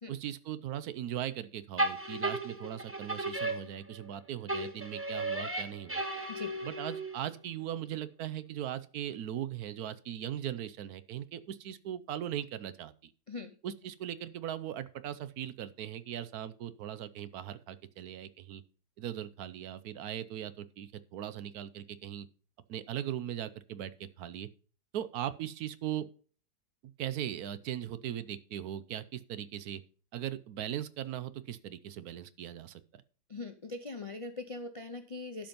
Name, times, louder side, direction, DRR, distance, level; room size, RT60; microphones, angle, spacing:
voice 1, 0.1-6.0 6.6-13.1 13.6-18.6 19.0-22.3 22.7-24.5 24.9-26.1 27.0-29.8 30.1-33.0, right 11 dB, 70° right, 14 dB, 1.1 m, -39 dB
sound 1, 1.8-4.1 4.5-7.3, right 2 dB, 10° right, 0.8 m, -35 dB
voice 2, 33.3-35.5, left 3 dB, 55° left, 7 dB, 0.3 m, -41 dB
12.0 x 5.2 x 5.2 m, 0.40 s
omnidirectional pair, 1.8 m